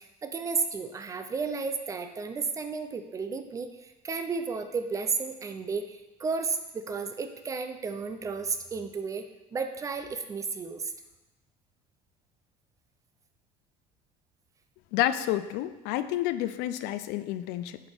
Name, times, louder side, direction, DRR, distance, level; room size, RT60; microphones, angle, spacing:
voice 1, 0.2-3.7 4.0-9.2 9.5-10.8, right 4 dB, 15° right, 7 dB, 0.3 m, -32 dB
voice 2, 14.9-17.8, left 13 dB, 65° left, 13 dB, 0.4 m, -29 dB
10.5 x 4.2 x 3.4 m, 1.0 s
cardioid pair, 175°, 19 cm